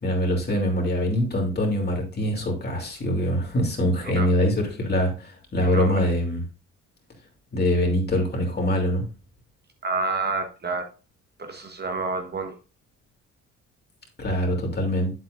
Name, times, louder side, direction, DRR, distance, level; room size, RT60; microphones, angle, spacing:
voice 1, 0.0-6.4 7.5-9.0 14.2-15.1, equal, 35° left, 1 dB, 3.0 m, -24 dB
voice 2, 5.6-6.1 9.8-10.9 11.4-12.5, right 3 dB, 35° right, 5 dB, 1.3 m, -29 dB
8.3 x 7.8 x 2.6 m, 0.33 s
cardioid pair, 90°, 30 cm